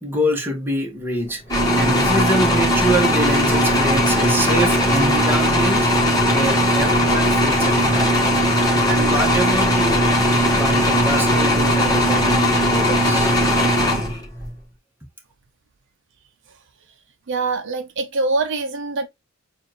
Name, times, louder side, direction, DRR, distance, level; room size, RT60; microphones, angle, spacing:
voice 1, 0.0-5.9 6.3-8.3 8.8-13.4, right 1 dB, 10° right, 1.3 m, -25 dB
sound 1, 1.5-14.5, equal, 20° left, 1.5 m, -18 dB
voice 2, 17.3-19.1, right 3 dB, 60° right, 0.6 m, -23 dB
6.9 x 2.5 x 2.9 m
head